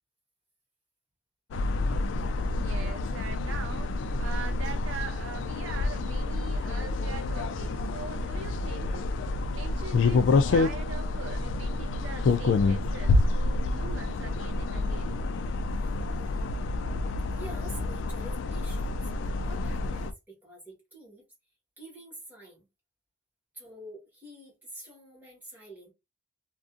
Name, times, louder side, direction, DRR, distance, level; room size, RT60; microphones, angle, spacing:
sound 1, 1.5-20.1, left 3 dB, 70° left, 0.3 m, -28 dB
voice 1, 2.4-9.1 9.5-15.2, right 5 dB, 75° right, 0.4 m, -42 dB
voice 2, 17.3-21.3 21.8-22.7 23.5-25.9, right 1 dB, 10° right, 1.3 m, -47 dB
2.5 x 2.4 x 2.4 m
head